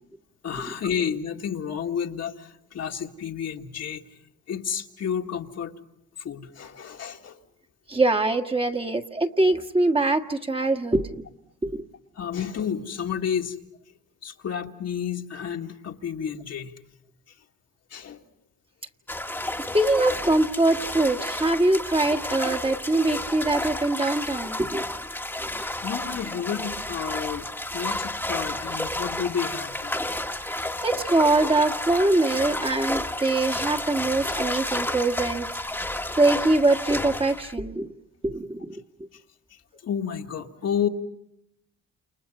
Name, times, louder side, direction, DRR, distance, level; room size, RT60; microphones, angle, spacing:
voice 1, 0.4-4.0 4.5-5.7 6.2-7.4 12.2-13.6 14.2-16.7 17.9-18.2 25.5-30.0 39.1-39.2 39.5-40.9, left 8 dB, 55° left, 3 dB, 2.0 m, -31 dB
voice 2, 7.9-11.2 11.6-11.8 19.6-24.9 25.4-25.6 30.8-35.5 35.8-35.9 36.2-37.9 38.2-39.1, right 2 dB, 20° right, 5 dB, 1.7 m, -23 dB
sound 1, 19.1-37.5, left 1 dB, 5° left, 1.5 m, -31 dB
29.0 x 29.0 x 5.6 m, 0.81 s
cardioid pair, 90°, 30 cm